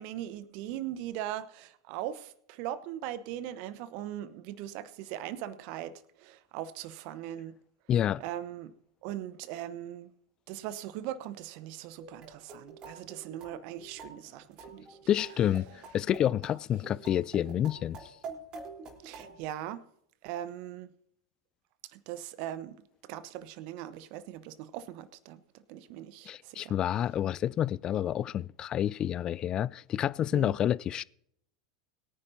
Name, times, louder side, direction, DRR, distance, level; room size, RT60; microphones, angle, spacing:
voice 1, 0.0-7.6 8.2-8.7 9.0-10.1 10.5-15.0 19.0-19.8 20.2-20.9 21.9-25.4 25.7-26.7 30.3-30.5, right 12 dB, 50° right, 1.0 m, -40 dB
voice 2, 7.9-8.2 15.1-15.7 15.9-18.1 26.3-31.0, left 10 dB, 30° left, 0.4 m, -29 dB
sound 1, 12.0-19.4, right 3 dB, 35° right, 3.8 m, -47 dB
22.0 x 9.9 x 2.8 m
figure-of-eight pair, 85°, 2 cm